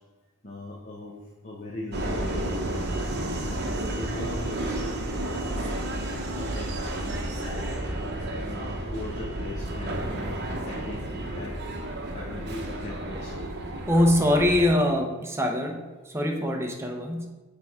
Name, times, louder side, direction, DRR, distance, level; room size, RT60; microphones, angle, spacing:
voice 1, 0.4-1.1 1.4-2.8 3.4-7.7 8.3-11.5 12.1-13.5, left 1 dB, 35° left, -4 dB, 0.9 m, -39 dB
Subway metro underground, 1.9-14.7, right 1 dB, 55° right, 0.8 m, -32 dB
voice 2, 13.9-17.3, left 1 dB, 15° right, 2 dB, 0.7 m, -23 dB
6.7 x 3.5 x 4.6 m, 1.3 s
head